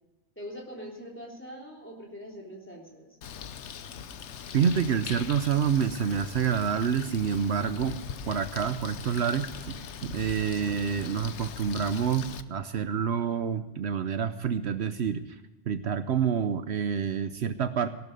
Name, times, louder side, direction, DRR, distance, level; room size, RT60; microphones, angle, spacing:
voice 1, 0.3-3.2, equal, 10° left, -2 dB, 3.4 m, -43 dB
Bird, 3.2-12.4, left 7 dB, 80° left, 1.1 m, -41 dB
voice 2, 4.5-8.0 8.3-15.4 15.7-17.9, right 7 dB, 70° right, 10 dB, 1.0 m, -28 dB
18.0 x 12.0 x 5.3 m, 1.2 s
omnidirectional pair, 1.2 m